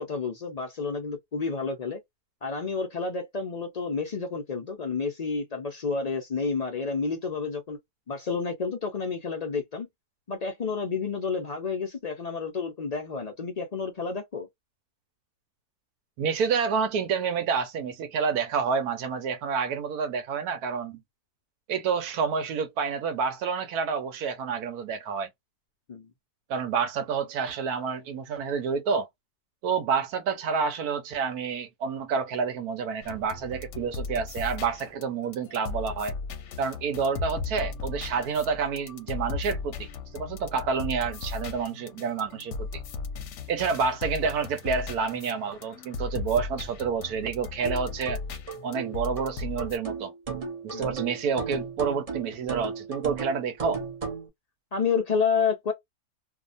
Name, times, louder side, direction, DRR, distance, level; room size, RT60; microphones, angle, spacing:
voice 1, 0.0-2.0 2.4-7.8 8.1-9.9 10.3-14.5 25.9-26.1 50.7-50.9 54.7-55.7, left 5 dB, 85° left, 0.3 m, -30 dB
voice 2, 16.2-21.0 21.7-25.3 26.5-29.1 29.6-36.1 36.6-42.8 43.5-48.2 48.6-50.1 50.6-53.8, right 5 dB, 85° right, 1.2 m, -29 dB
sound 1, 33.0-49.8, left 4 dB, 65° left, 0.8 m, -37 dB
sound 2, 47.6-54.3, right 5 dB, 30° right, 0.7 m, -35 dB
2.8 x 2.2 x 2.4 m
omnidirectional pair, 1.6 m